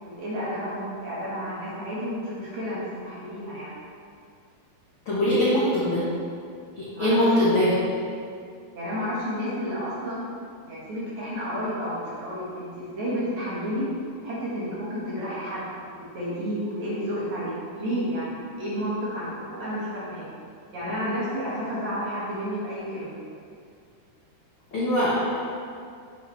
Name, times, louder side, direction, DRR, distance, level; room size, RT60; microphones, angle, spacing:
voice 1, 0.0-3.7 6.9-7.3 8.7-10.3 10.6-13.9 14.2-15.7 16.0-20.3 20.7-23.2, equal, 55° right, -8 dB, 2.5 m, -31 dB
voice 2, 5.0-6.0 6.7-7.7 24.7-25.4, left 1 dB, 80° left, -10 dB, 1.1 m, -22 dB
7.6 x 7.3 x 3.4 m, 2.3 s
omnidirectional pair, 4.7 m